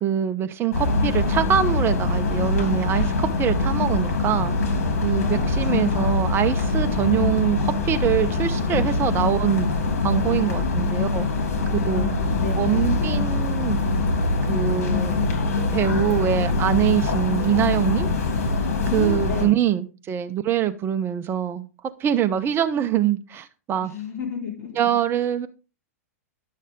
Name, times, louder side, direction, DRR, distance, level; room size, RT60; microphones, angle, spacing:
voice 1, 0.0-4.5 5.0-9.7 10.0-11.3 11.9-12.1 12.6-13.8 14.5-15.3 15.7-18.1 18.9-21.7 22.0-23.9 24.8-25.5, right 10 dB, 25° right, 9 dB, 0.9 m, -24 dB
sound 1, 0.7-19.5, left 3 dB, 75° left, 3.1 m, -23 dB
voice 2, 5.2-5.9 11.9-12.8 18.9-19.6 23.8-24.7, left 5 dB, 30° left, -2 dB, 4.2 m, -32 dB
10.5 x 6.5 x 3.7 m, 0.33 s
hypercardioid pair, 110°, 8 cm